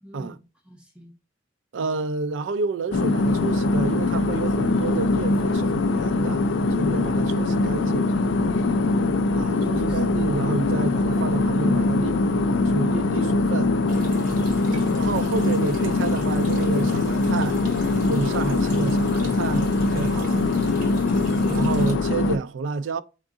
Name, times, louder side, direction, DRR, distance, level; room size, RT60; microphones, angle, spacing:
voice 1, 0.0-1.1 9.4-10.0 14.7-15.0, equal, 5° right, 0.8 m, -39 dB
voice 2, 1.7-6.4 6.8-8.1 9.3-13.7 15.0-17.6 18.1-20.5 21.5-23.0, right 4 dB, 80° right, 0.4 m, -29 dB
sound 1, 2.9-22.4, left 2 dB, 75° left, 0.4 m, -22 dB
Water tap faucet, 13.9-21.9, right 4 dB, 50° right, 1.4 m, -45 dB
3.7 x 3.6 x 3.8 m
head